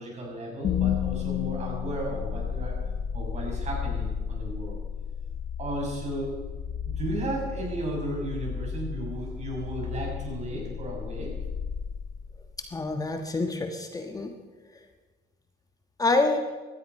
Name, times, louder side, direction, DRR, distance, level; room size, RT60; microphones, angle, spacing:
voice 1, 0.0-2.8 3.1-4.8 5.6-6.4 6.8-11.4, right 1 dB, 40° right, 0 dB, 6.4 m, -34 dB
sound 1, 0.6-12.7, left 8 dB, 50° left, 0.8 m, -33 dB
voice 2, 12.7-14.3 16.0-16.4, left 3 dB, 20° left, 5 dB, 1.4 m, -26 dB
17.5 x 13.0 x 5.5 m, 1.3 s
cardioid pair, 110°, 17 cm